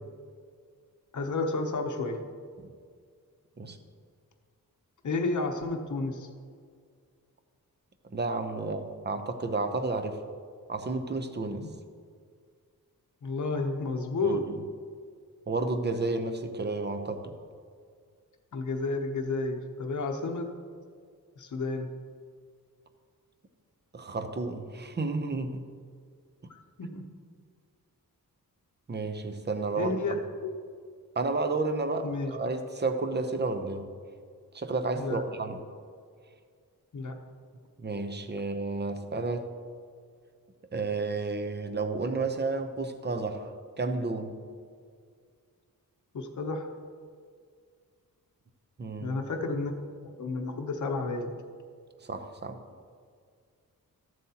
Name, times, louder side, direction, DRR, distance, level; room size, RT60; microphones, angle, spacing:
voice 1, 1.1-2.2 5.0-6.3 13.2-14.4 18.5-20.5 21.4-21.9 26.8-27.0 29.8-30.2 30.4-30.6 32.0-32.3 34.9-35.2 36.9-37.1 46.1-46.7 49.0-49.7 50.2-51.3, left 3 dB, 55° left, 3 dB, 0.9 m, -31 dB
voice 2, 8.1-10.2 10.7-11.7 14.2-14.6 15.5-17.4 23.9-25.6 28.9-30.2 31.2-33.8 34.5-35.6 37.8-39.5 40.7-44.4 48.8-49.2 52.0-52.6, right 3 dB, 30° right, 8 dB, 0.7 m, -31 dB
13.5 x 7.6 x 2.9 m, 2.1 s
wide cardioid pair, 120°, 36 cm